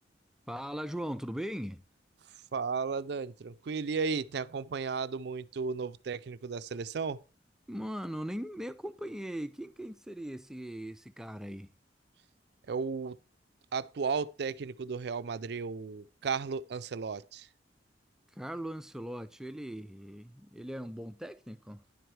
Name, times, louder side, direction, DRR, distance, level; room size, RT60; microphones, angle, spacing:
voice 1, 0.5-1.8 7.7-11.7 18.4-21.8, equal, 5° right, 0.4 m, -39 dB
voice 2, 2.5-7.2 12.7-13.2 13.7-17.5, right 5 dB, 65° right, 0.4 m, -34 dB
10.0 x 7.8 x 3.2 m
head